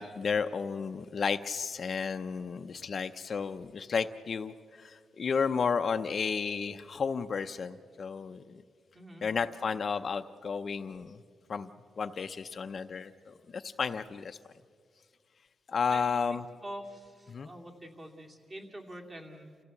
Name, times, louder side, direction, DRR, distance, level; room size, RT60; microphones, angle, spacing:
voice 1, 0.0-8.6 9.2-11.2 11.5-11.7 12.0-14.4 15.7-16.4 17.3-17.5, left 5 dB, 45° left, 9 dB, 0.6 m, -32 dB
voice 2, 15.9-19.6, right 1 dB, 30° right, 2 dB, 2.7 m, -46 dB
29.0 x 15.5 x 8.4 m, 2.1 s
wide cardioid pair, 135°, 0 cm